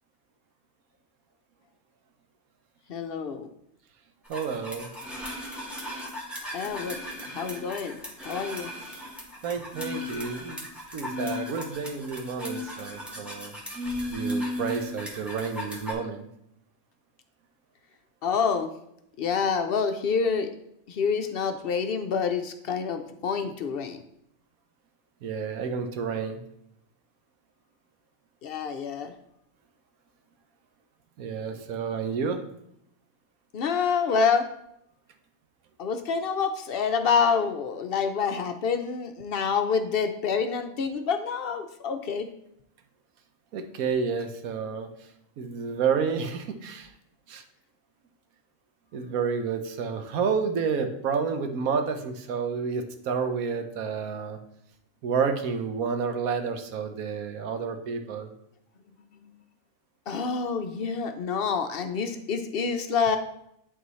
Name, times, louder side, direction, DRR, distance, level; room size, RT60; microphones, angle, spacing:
voice 1, 2.9-3.5 6.5-7.0 7.2-8.7 18.2-18.7 19.2-20.5 20.9-24.0 28.4-29.1 33.5-34.5 35.8-42.3 60.1-63.2, left 5 dB, 60° left, 7 dB, 0.7 m, -27 dB
sound 1, 4.3-15.9, left 1 dB, ahead, 1.4 m, -35 dB
voice 2, 4.3-4.9 7.3-7.4 9.4-10.7 10.9-13.7 14.1-16.3 25.2-26.4 31.2-32.4 43.5-44.9 45.4-46.9 47.3-47.4 48.9-54.4 55.0-58.3, right 5 dB, 90° right, 7 dB, 1.2 m, -30 dB
11.0 x 3.9 x 3.1 m, 0.75 s
omnidirectional pair, 1.4 m